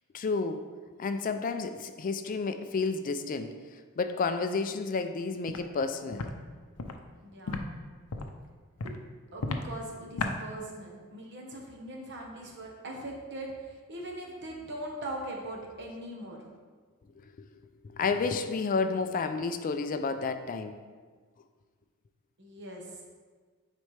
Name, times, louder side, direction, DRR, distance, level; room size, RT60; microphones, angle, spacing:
voice 1, 0.1-0.6 1.0-3.5 4.0-6.3 17.4-17.5 17.8-20.8, left 4 dB, 40° left, 8 dB, 0.3 m, -31 dB
Walk footsteps, 5.5-5.6 6.1-6.3 6.8-6.9 7.5-7.6 8.1-8.3 8.8-9.0 9.4-9.6 10.2-10.3, left 3 dB, 90° left, 0.6 m, -33 dB
voice 2, 7.2-7.7 8.8-8.9 9.3-16.4 22.4-23.0, right 1 dB, 55° right, 0 dB, 1.2 m, -41 dB
9.7 x 4.2 x 3.3 m, 1.5 s
head